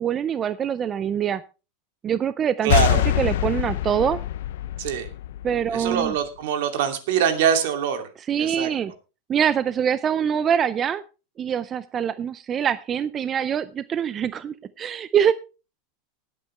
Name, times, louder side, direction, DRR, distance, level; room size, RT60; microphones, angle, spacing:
voice 1, 0.0-1.4 2.0-2.7 3.2-4.2 5.4-6.1 8.3-8.9 9.3-11.0 11.4-15.3, right 8 dB, 25° right, 15 dB, 0.5 m, -24 dB
voice 2, 2.6-3.0 4.8-5.1 5.7-8.1 8.4-8.7, right 8 dB, 70° right, 7 dB, 2.6 m, -23 dB
sound 1, 2.7-6.2, left 13 dB, 75° left, 0.5 m, -24 dB
19.0 x 8.6 x 3.3 m, 0.32 s
supercardioid pair, 155°, 0 cm